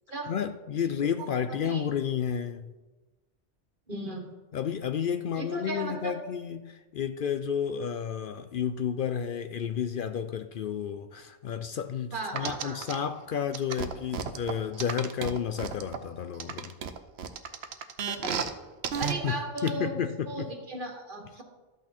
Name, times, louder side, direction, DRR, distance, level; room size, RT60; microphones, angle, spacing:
voice 1, 0.3-2.7 4.5-16.7 19.2-20.5, left 8 dB, 60° left, 10 dB, 0.6 m, -31 dB
voice 2, 1.2-1.8 3.9-4.3 5.3-6.1 12.1-12.8 18.1-18.5 19.0-21.4, right 2 dB, 50° right, 3 dB, 1.7 m, -36 dB
sound 1, 12.4-12.9 13.5-16.0 16.4-18.5 18.8-19.1 19.6-19.7, right 7 dB, 75° right, 1.0 m, -32 dB
13.0 x 8.4 x 4.3 m, 1.2 s
omnidirectional pair, 1.1 m